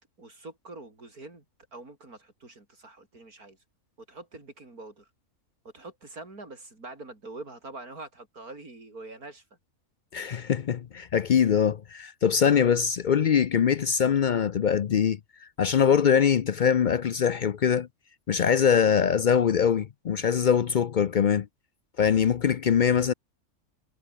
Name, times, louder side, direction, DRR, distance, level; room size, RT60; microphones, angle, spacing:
voice 1, 0.0-1.4 1.7-3.6 4.1-5.1 5.6-9.4, right 2 dB, 75° right, 5.9 m, -44 dB
voice 2, 10.1-15.2 15.6-17.9 18.3-21.5 22.0-23.1, left 7 dB, 70° left, 0.4 m, -23 dB
omnidirectional pair, 1.6 m